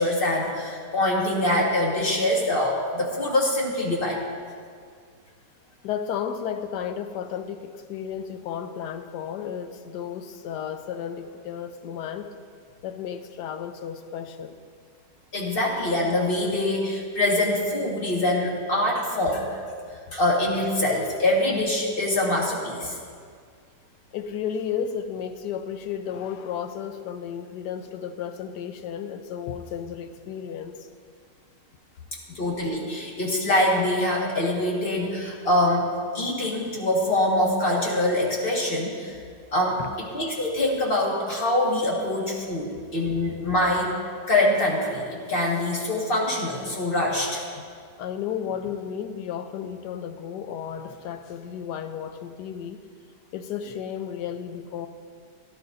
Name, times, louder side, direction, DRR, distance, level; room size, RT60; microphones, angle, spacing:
voice 1, 0.0-4.2 15.3-19.5 20.1-22.9 32.4-35.9 36.1-39.2 39.5-39.8 40.1-43.9 44.3-47.4, left 1 dB, 35° left, -2 dB, 1.7 m, -24 dB
voice 2, 5.8-12.3 12.8-14.6 22.8-22.9 24.1-30.9 32.3-32.4 39.8-39.9 46.8-46.9 48.0-52.8 53.3-54.9, left 8 dB, 75° left, 8 dB, 1.2 m, -33 dB
17.0 x 11.0 x 2.6 m, 2.1 s
omnidirectional pair, 1.9 m